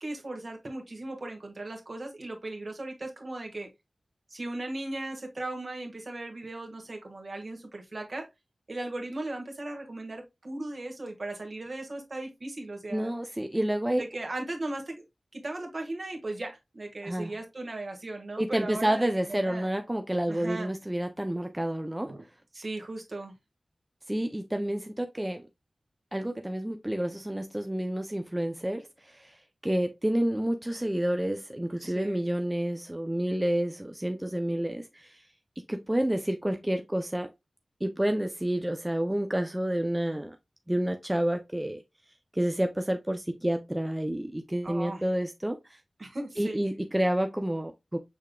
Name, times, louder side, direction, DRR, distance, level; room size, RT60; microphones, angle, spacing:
voice 1, 0.0-3.7 4.3-8.3 8.7-13.1 14.0-15.0 15.3-19.7 20.3-20.7 22.0-22.2 22.5-23.3 31.8-32.2 44.6-45.0 46.0-46.6, right 2 dB, 55° right, 1.5 m, -37 dB
voice 2, 12.9-14.0 17.0-17.3 18.4-22.1 24.1-25.5 26.1-29.4 29.6-35.2 35.7-37.3 37.8-40.4 40.7-41.8 42.3-45.8 46.4-48.0, right 1 dB, 15° right, 0.5 m, -29 dB
6.6 x 3.5 x 2.2 m
wide cardioid pair, 70°, 0 cm